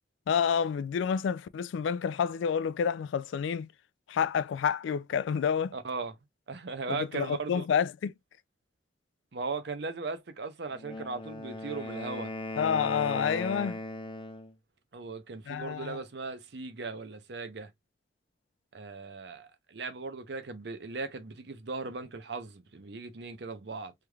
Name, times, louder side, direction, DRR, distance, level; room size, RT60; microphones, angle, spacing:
voice 1, 0.3-3.7 4.1-5.7 6.9-8.1 12.6-13.8 15.5-16.0, left 7 dB, 85° left, 0.3 m, -29 dB
voice 2, 5.7-6.2 6.5-7.7 9.3-12.3 14.9-17.7 18.7-23.9, right 4 dB, 65° right, 0.6 m, -38 dB
Wind instrument woodwind instrument, 10.7-14.5, left 2 dB, 25° left, 0.6 m, -38 dB
3.3 x 3.2 x 2.3 m
head